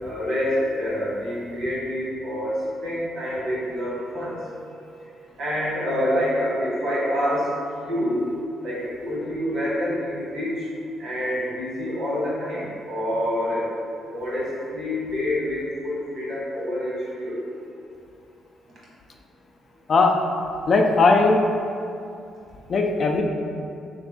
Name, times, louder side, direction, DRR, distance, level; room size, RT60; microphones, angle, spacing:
voice 1, 0.0-2.6 2.8-8.3 8.6-10.6 11.0-13.7 14.1-17.4, equal, 65° right, -6 dB, 1.3 m, -27 dB
voice 2, 19.9-20.2 20.7-21.5 22.7-23.2, left 3 dB, 50° left, 2 dB, 0.3 m, -18 dB
3.3 x 2.5 x 3.5 m, 2.5 s
cardioid pair, 90°, 0 cm